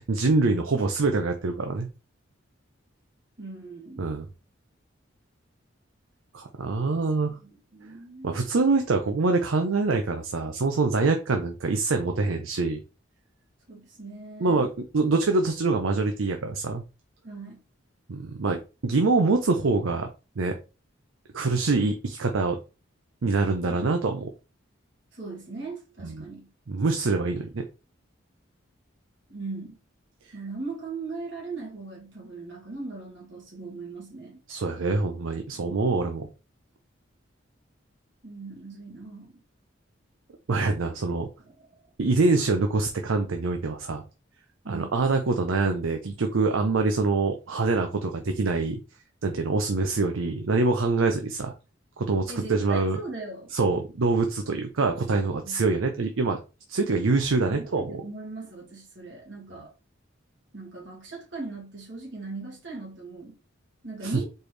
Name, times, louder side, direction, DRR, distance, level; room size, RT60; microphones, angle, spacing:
voice 1, 0.1-1.9 4.0-4.2 6.3-7.4 8.2-12.8 14.4-16.8 18.1-20.1 20.4-20.6 21.3-22.6 23.2-24.3 26.0-26.2 26.7-27.7 34.5-36.3 40.5-41.3 42.0-44.0 44.7-48.8 49.2-51.5 52.0-53.0 53.5-56.4 56.7-58.0 64.0-64.1, right 3 dB, 80° right, 0.6 m, -25 dB
voice 2, 3.4-4.1 7.3-8.4 13.7-14.7 17.2-17.6 23.7-23.9 25.1-26.5 29.3-29.7 30.3-34.4 38.2-39.4 44.6-44.9 52.3-53.5 55.4-55.6 57.5-59.7 60.5-63.3 63.8-64.3, right 3 dB, 65° right, 2.0 m, -39 dB
4.4 x 3.3 x 3.2 m
head